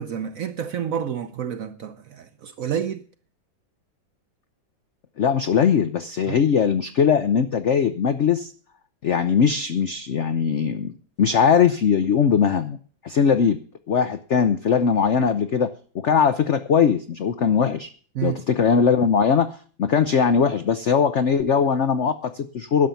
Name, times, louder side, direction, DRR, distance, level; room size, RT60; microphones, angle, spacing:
voice 1, 0.0-3.0 6.3-6.4 18.1-18.4, right 9 dB, 65° right, 0.8 m, -29 dB
voice 2, 5.2-8.5 9.0-12.8 13.0-13.6 13.9-15.7 15.9-17.9 18.2-19.5 19.8-22.9, left 6 dB, 90° left, 0.6 m, -20 dB
11.5 x 7.0 x 9.0 m
omnidirectional pair, 2.1 m